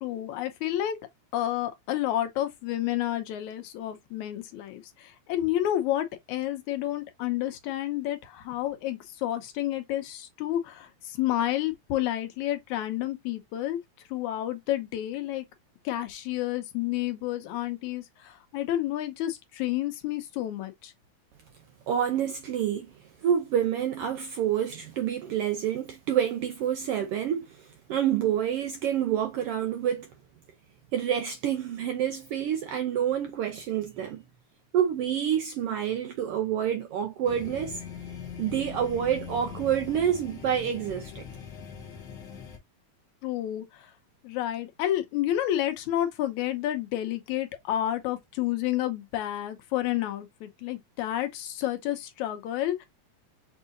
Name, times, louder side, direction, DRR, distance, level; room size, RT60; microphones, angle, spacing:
voice 1, 0.0-1.0 1.3-13.8 14.1-15.5 15.9-20.9 43.2-43.9 44.2-52.9, left 13 dB, 85° left, 2.2 m, -30 dB
voice 2, 21.9-22.9 23.2-30.1 30.9-34.2 34.7-37.8 38.4-41.2, right 9 dB, 75° right, 1.4 m, -28 dB
sound 1, 37.2-42.6, left 7 dB, 60° left, 1.3 m, -41 dB
6.6 x 2.8 x 2.5 m
omnidirectional pair, 3.3 m